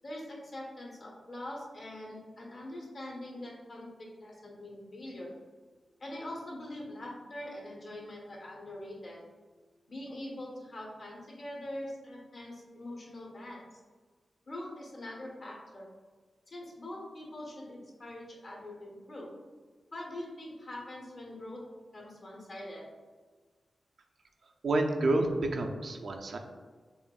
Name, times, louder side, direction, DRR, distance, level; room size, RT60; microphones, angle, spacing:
voice 1, 0.0-5.3 6.0-9.2 9.9-13.8 14.5-15.9 16.5-19.3 19.9-21.6 21.9-22.8, left 1 dB, 60° left, -3 dB, 1.3 m, -43 dB
voice 2, 24.6-26.4, right 2 dB, 70° right, 3 dB, 0.4 m, -29 dB
4.8 x 2.5 x 2.3 m, 1.4 s
cardioid pair, 55°, 0 cm